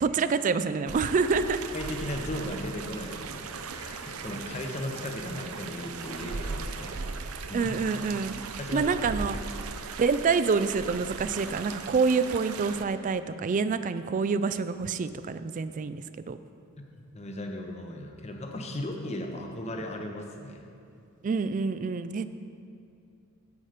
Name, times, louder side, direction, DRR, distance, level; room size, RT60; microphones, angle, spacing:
voice 1, 0.0-1.6 7.5-8.4 8.7-9.4 10.0-16.4 21.2-22.2, right 5 dB, 35° right, 12 dB, 0.3 m, -27 dB
water steram, 0.9-12.8, right 4 dB, 85° right, 0.6 m, -38 dB
voice 2, 1.7-3.5 3.7-7.1 7.4-7.8 8.6-8.9 17.1-20.6, left 1 dB, 30° left, 3 dB, 0.9 m, -36 dB
9.7 x 8.0 x 5.0 m, 2.6 s
head